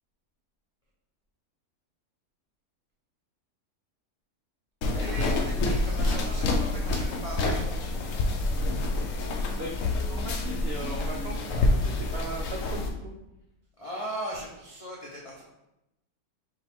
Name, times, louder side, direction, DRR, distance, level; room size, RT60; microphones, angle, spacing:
sound 1, 4.8-12.9, left 2 dB, 65° left, 0.9 m, -27 dB
voice 1, 4.9-7.6 13.8-15.4, equal, 45° left, -4 dB, 0.4 m, -38 dB
voice 2, 10.1-13.1, right 2 dB, 75° right, 0 dB, 0.5 m, -38 dB
5.4 x 2.5 x 3.5 m, 0.90 s
omnidirectional pair, 1.6 m